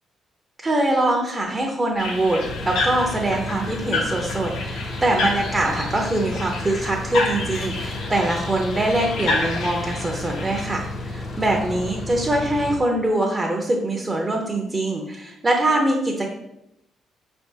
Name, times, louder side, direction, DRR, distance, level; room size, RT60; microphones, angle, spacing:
voice 1, 0.6-16.3, right 1 dB, 25° right, -1 dB, 0.7 m, -23 dB
sound 1, 2.0-11.7, left 3 dB, 85° left, 0.9 m, -30 dB
sound 2, 2.4-12.8, left 2 dB, 45° left, 0.6 m, -33 dB
5.3 x 3.4 x 2.8 m, 0.83 s
cardioid pair, 90°, 0 cm